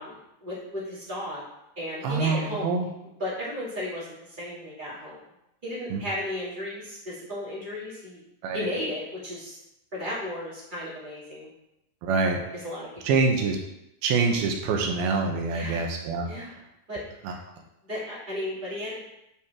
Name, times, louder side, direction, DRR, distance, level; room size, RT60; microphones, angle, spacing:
voice 1, 0.0-1.4 1.8-2.7 3.2-4.1 4.4-5.2 5.6-8.2 8.5-9.6 9.9-11.5 12.5-12.9 13.4-13.5 15.5-15.8 16.3-16.6 16.9-17.4 17.8-19.0, left 1 dB, 15° right, -7 dB, 2.2 m, -34 dB
voice 2, 2.0-2.9 5.9-6.0 8.4-8.6 12.0-12.4 13.1-13.6 14.0-16.3, right 4 dB, 85° right, 2 dB, 3.0 m, -25 dB
10.5 x 4.7 x 3.7 m, 0.86 s
omnidirectional pair, 4.2 m